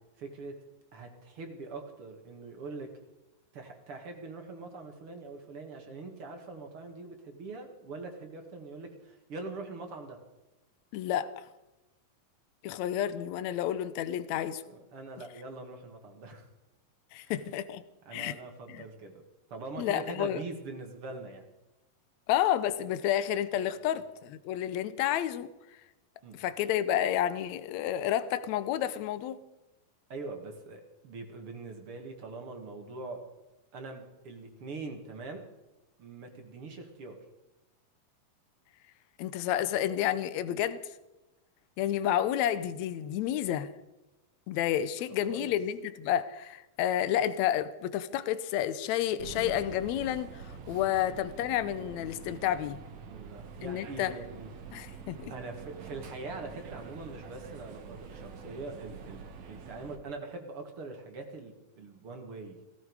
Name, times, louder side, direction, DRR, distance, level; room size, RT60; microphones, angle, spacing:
voice 1, 0.2-0.5 0.9-2.9 3.5-10.2 14.7-16.5 17.2-17.3 18.1-19.2 19.5-21.4 23.8-24.0 26.2-26.4 30.1-33.2 33.7-35.4 36.0-37.2 45.3-45.6 53.0-54.6 55.3-62.6, right 3 dB, 45° right, 2.5 m, -43 dB
voice 2, 10.9-11.3 12.6-14.6 17.1-17.8 18.1-18.4 18.7-18.8 19.8-20.4 22.3-25.5 26.3-29.4 39.2-40.8 41.8-43.7 44.5-52.8 53.6-54.1 54.7-55.3, left 11 dB, 75° left, 1.7 m, -30 dB
sound 1, 49.2-60.0, right 6 dB, 60° right, 2.7 m, -46 dB
17.5 x 16.0 x 4.8 m
omnidirectional pair, 4.0 m